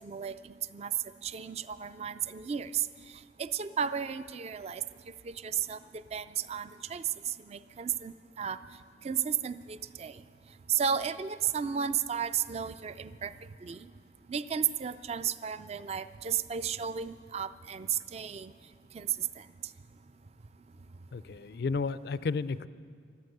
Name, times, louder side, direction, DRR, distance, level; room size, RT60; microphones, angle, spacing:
voice 1, 0.0-0.9 1.2-2.9 3.4-8.6 9.0-10.2 10.7-13.9 14.3-18.5 18.9-19.5, right 8 dB, 35° right, 14 dB, 0.4 m, -34 dB
voice 2, 21.1-22.7, left 4 dB, 60° left, 16 dB, 0.4 m, -32 dB
13.5 x 12.0 x 7.9 m, 2.1 s
head